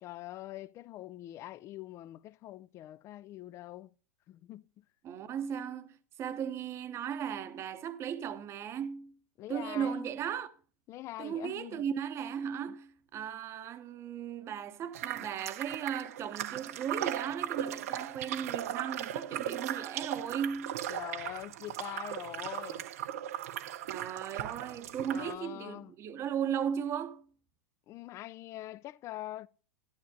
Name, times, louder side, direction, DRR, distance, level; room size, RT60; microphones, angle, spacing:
voice 1, 0.0-3.9 4.3-4.8 9.4-10.1 10.9-11.8 12.6-12.7 20.9-22.8 25.1-25.9 27.9-29.5, left 15 dB, 35° left, 0.4 m, -44 dB
voice 2, 5.0-9.1 9.5-10.5 11.2-20.8 23.9-27.2, right 8 dB, 35° right, 0.8 m, -36 dB
sound 1, 14.9-25.3, right 11 dB, 70° right, 0.5 m, -38 dB
12.5 x 11.5 x 2.7 m
hypercardioid pair, 105°, 8 cm